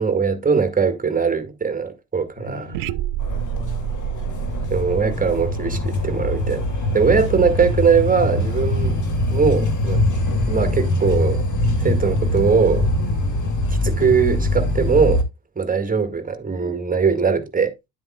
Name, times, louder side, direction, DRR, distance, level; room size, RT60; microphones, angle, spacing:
voice 1, 0.0-2.7 4.7-6.7 6.9-9.0 9.3-10.0 10.5-11.4 11.8-12.9 13.8-15.2 15.6-17.7, right 5 dB, 15° right, 1.8 m, -20 dB
voice 2, 2.4-3.0 3.3-4.3 7.0-7.6 13.0-13.5, left 2 dB, 80° left, 2.2 m, -38 dB
sound 1, 2.7-6.8, right 13 dB, 45° right, 0.5 m, -29 dB
sound 2, 3.2-15.2, left 1 dB, 35° left, 2.5 m, -23 dB
10.5 x 7.7 x 2.3 m
figure-of-eight pair, 60°, 50 cm